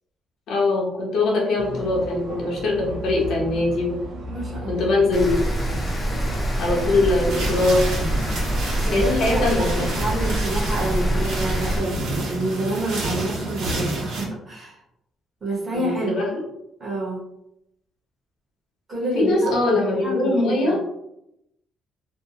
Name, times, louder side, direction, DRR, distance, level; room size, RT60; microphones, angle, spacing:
voice 1, 0.5-4.0 4.7-5.4 5.7-5.8 6.6-8.0 8.9-9.9 15.7-16.4 19.1-20.8, left 2 dB, 60° left, -3 dB, 0.8 m, -22 dB
sound 1, 1.6-10.1, equal, 50° right, 0.5 m, -36 dB
voice 2, 4.3-5.0 8.8-14.8 15.4-16.2 16.8-17.2 18.9-20.8, right 1 dB, 20° right, -5 dB, 0.9 m, -28 dB
Rain, 5.1-11.8, right 1 dB, 15° left, 0.5 m, -25 dB
sound 2, 7.3-14.2, right 2 dB, 85° right, 1.0 m, -29 dB
2.6 x 2.1 x 2.7 m, 0.81 s
cardioid pair, 170°, 0 cm